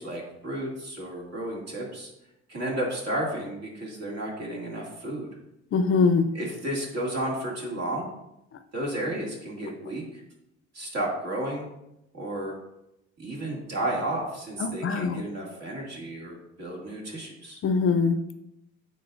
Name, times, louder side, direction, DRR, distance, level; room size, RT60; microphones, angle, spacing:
voice 1, 0.0-2.1 2.5-5.3 6.3-8.1 8.7-10.2 10.7-11.7 12.1-12.5 13.2-17.6, right 1 dB, 55° right, -3 dB, 2.4 m, -32 dB
voice 2, 5.7-6.3 14.6-15.2 17.6-18.4, left 4 dB, 45° left, 10 dB, 0.5 m, -23 dB
9.0 x 4.2 x 2.6 m, 0.86 s
cardioid pair, 90°, 30 cm